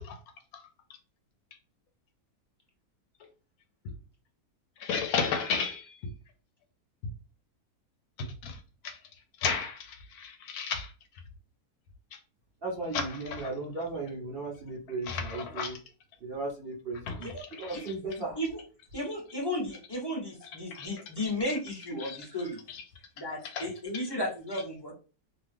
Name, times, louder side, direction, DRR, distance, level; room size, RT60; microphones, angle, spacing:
voice 1, 4.8-5.8 8.4-8.5 8.8-8.9 9.4-9.9 10.2-10.9 15.1-15.7 17.1-17.2 20.7-20.9 22.0-22.2 23.5-23.6, left 6 dB, 75° left, 1.1 m, -31 dB
voice 2, 12.6-15.8 16.2-17.3 17.6-18.4, right 3 dB, 45° right, 0.9 m, -36 dB
voice 3, 18.9-22.6 23.2-24.9, left 1 dB, 20° left, 0.9 m, -34 dB
2.8 x 2.3 x 3.3 m
omnidirectional pair, 1.7 m